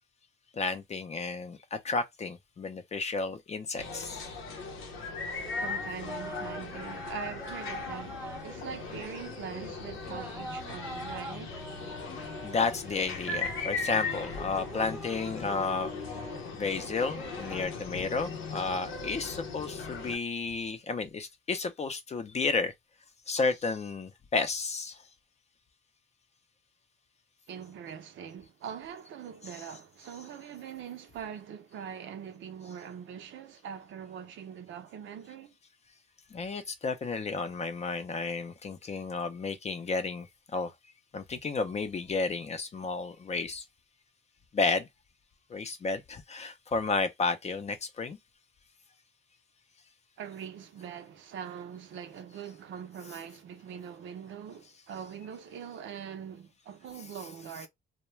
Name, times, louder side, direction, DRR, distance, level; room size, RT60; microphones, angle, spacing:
voice 1, 0.5-4.2 12.4-15.9 16.5-22.7 23.3-25.0 36.3-40.3 40.5-40.7 41.1-43.6 44.5-44.9 45.5-48.2, left 4 dB, 35° left, 0.5 m, -32 dB
sound 1, 3.8-20.2, left 4 dB, 90° left, 0.7 m, -38 dB
sound 2, 5.1-17.6, right 1 dB, 10° right, 0.6 m, -44 dB
voice 2, 5.6-11.6 27.5-35.5 50.2-57.7, right 8 dB, 75° right, 0.6 m, -42 dB
2.3 x 2.1 x 3.0 m
cardioid pair, 90°, 20 cm